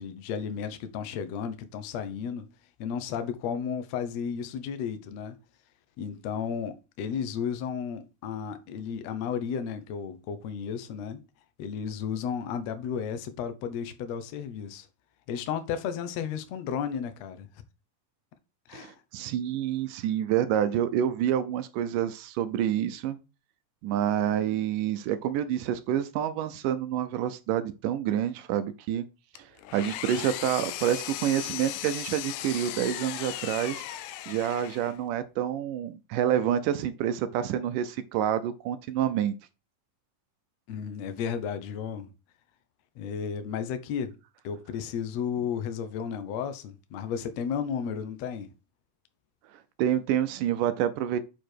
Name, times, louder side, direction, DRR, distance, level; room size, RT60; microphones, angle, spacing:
voice 1, 0.0-2.5 2.8-5.4 6.0-11.2 11.6-14.9 15.3-17.5 18.7-18.9 40.7-42.1 43.0-44.1 44.4-48.5, left 7 dB, 75° left, 1.6 m, -33 dB
voice 2, 19.1-23.2 23.8-29.1 29.4-29.5 29.7-33.8 34.3-39.3 49.8-51.2, right 10 dB, 75° right, 2.0 m, -28 dB
Engine, 29.4-35.1, left 14 dB, 90° left, 2.5 m, -37 dB
7.0 x 4.8 x 4.5 m
omnidirectional pair, 4.2 m